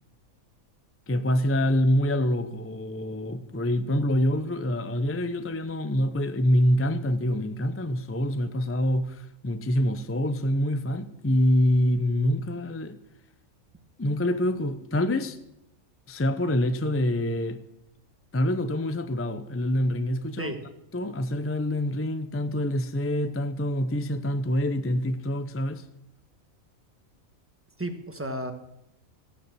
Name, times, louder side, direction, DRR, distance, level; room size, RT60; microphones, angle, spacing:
voice 1, 1.1-13.0 14.0-15.4 16.1-17.6 18.3-20.5 20.9-25.8, left 1 dB, 15° left, 0.5 m, -26 dB
voice 2, 27.8-28.5, right 1 dB, 10° right, 1.3 m, -32 dB
14.0 x 9.1 x 7.5 m
omnidirectional pair, 1.5 m